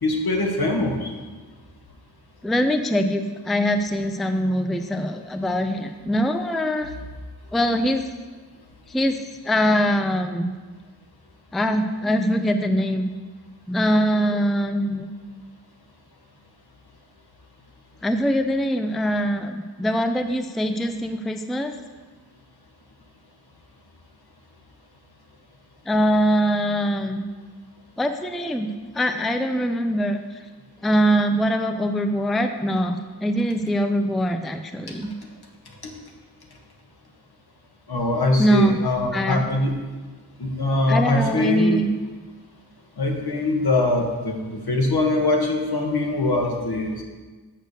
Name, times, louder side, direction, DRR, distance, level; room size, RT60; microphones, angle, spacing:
voice 1, 0.0-1.1 35.8-35.9 37.9-39.7 40.4-41.8 43.0-47.0, left 2 dB, 65° left, 1 dB, 1.5 m, -22 dB
voice 2, 2.4-6.9 7.5-8.0 8.9-10.5 11.5-13.1 13.7-15.1 18.0-21.7 25.9-27.2 28.0-30.2 30.8-35.1 38.4-38.8 39.1-39.4 40.9-41.9, equal, ahead, 7 dB, 0.4 m, -23 dB
6.5 x 6.5 x 6.7 m, 1.3 s
wide cardioid pair, 80°, 40 cm